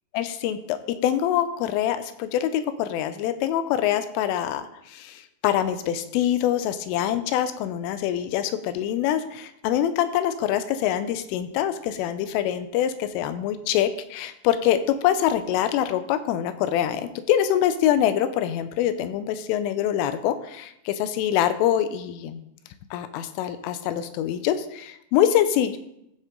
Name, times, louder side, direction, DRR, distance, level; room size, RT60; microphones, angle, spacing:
voice 1, 0.1-22.4 22.9-25.8, left 11 dB, 85° left, 11 dB, 3.1 m, -25 dB
15.0 x 6.5 x 3.7 m, 0.79 s
omnidirectional pair, 5.9 m